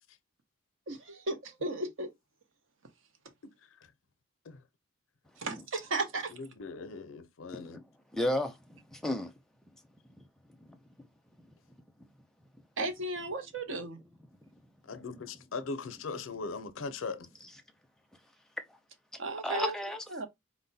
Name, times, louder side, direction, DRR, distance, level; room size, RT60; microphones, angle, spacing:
voice 1, 0.9-2.1 5.4-6.3 12.8-14.0 19.2-19.7 20.1-20.3, right 2 dB, 75° right, 0.8 m, -35 dB
voice 2, 6.3-7.8 14.9-17.3, left 4 dB, 90° left, 0.5 m, -39 dB
voice 3, 8.1-9.3 16.6-16.7 19.4-20.0, left 1 dB, ahead, 0.5 m, -33 dB
4.2 x 2.1 x 4.0 m
head